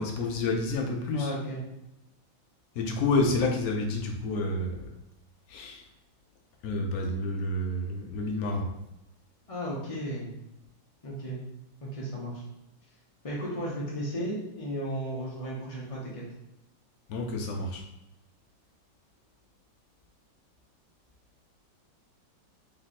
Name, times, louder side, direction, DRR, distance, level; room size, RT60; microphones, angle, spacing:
voice 1, 0.0-1.3 2.7-4.8 5.5-5.8 6.6-8.7 17.1-17.8, left 2 dB, 75° left, 1 dB, 0.8 m, -29 dB
voice 2, 1.1-1.6 9.5-10.3 11.0-11.4 11.8-12.4 13.2-16.2, equal, 60° left, -5 dB, 0.3 m, -34 dB
3.3 x 3.2 x 4.0 m, 0.91 s
omnidirectional pair, 2.2 m